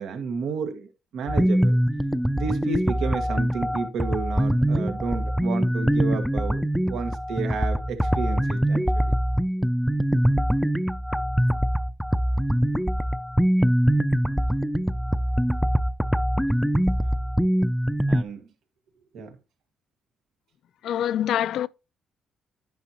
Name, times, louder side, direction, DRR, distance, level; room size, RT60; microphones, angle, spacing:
voice 1, 0.0-1.8 2.3-9.1 18.1-18.5 19.1-19.4, right 5 dB, 80° right, 1.8 m, -32 dB
sound 1, 1.3-18.2, equal, ahead, 0.5 m, -23 dB
voice 2, 20.8-21.7, left 10 dB, 75° left, 0.4 m, -25 dB
10.5 x 5.4 x 3.0 m
cardioid pair, 90°, 0 cm